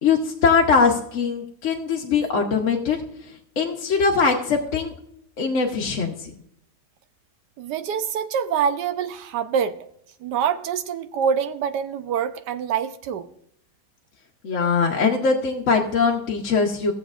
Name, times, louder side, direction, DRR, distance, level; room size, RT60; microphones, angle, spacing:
voice 1, 0.0-3.0 3.6-4.9 5.4-6.3 14.4-16.9, left 5 dB, 55° left, 1.1 m, -21 dB
voice 2, 7.6-9.8 10.2-13.3, right 7 dB, 80° right, 1.3 m, -25 dB
16.0 x 7.1 x 2.4 m
omnidirectional pair, 1.8 m